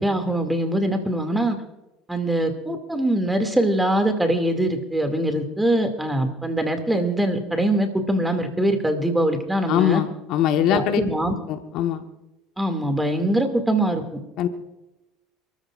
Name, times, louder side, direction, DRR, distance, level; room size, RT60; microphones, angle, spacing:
voice 1, 0.0-1.6 2.1-10.0 10.6-11.3 12.6-14.0, right 1 dB, 5° right, 5 dB, 2.4 m, -23 dB
voice 2, 9.7-11.0 11.5-12.0 14.4-14.5, left 10 dB, 65° left, 7 dB, 1.3 m, -22 dB
28.5 x 14.0 x 2.5 m, 1.0 s
supercardioid pair, 105°, 0 cm